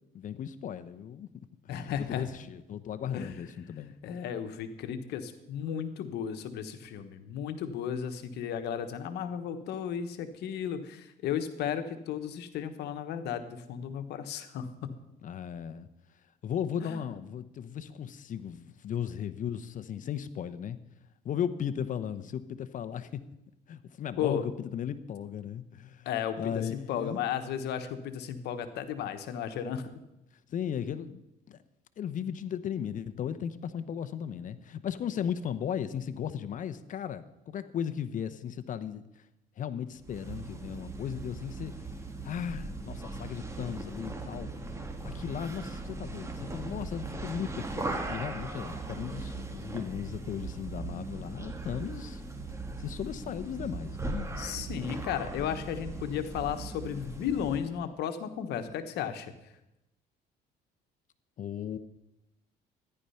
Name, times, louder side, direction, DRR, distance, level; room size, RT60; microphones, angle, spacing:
voice 1, 0.1-1.3 1.6-3.9 15.2-15.9 16.4-20.8 21.2-23.2 23.7-26.1 26.4-27.2 30.5-31.2 31.5-31.6 32.0-39.0 39.6-41.7 42.2-44.5 45.0-52.2 52.8-54.3 61.4-61.8, left 8 dB, 50° left, 13 dB, 0.9 m, -36 dB
voice 2, 1.7-2.3 3.1-3.3 4.0-14.9 16.8-17.0 24.2-24.5 26.0-29.9 54.4-59.3, left 8 dB, 80° left, 9 dB, 1.2 m, -34 dB
sound 1, 40.0-57.7, right 3 dB, 15° right, 1.6 m, -39 dB
13.5 x 11.0 x 5.7 m, 0.91 s
cardioid pair, 110°, 17 cm